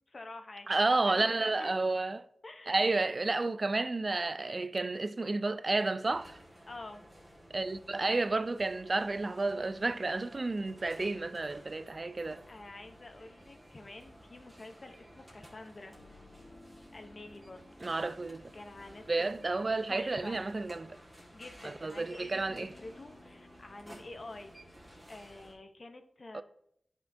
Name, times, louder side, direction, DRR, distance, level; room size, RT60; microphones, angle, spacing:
voice 1, 0.1-1.7 2.4-2.7 6.6-7.1 12.5-16.0 16.9-17.7 18.5-19.3 19.9-20.4 21.3-24.5 25.1-26.4, left 2 dB, 45° left, 0.7 m, -48 dB
voice 2, 0.7-2.2 2.7-6.4 7.5-12.4 17.8-18.4 19.1-21.0 21.8-22.7 26.3-26.4, right 3 dB, 45° right, 0.4 m, -31 dB
sound 1, 6.0-25.5, equal, 5° right, 1.6 m, -55 dB
sound 2, 13.9-24.9, left 2 dB, 70° left, 2.6 m, -60 dB
9.3 x 5.7 x 2.6 m
wide cardioid pair, 75°, 0 cm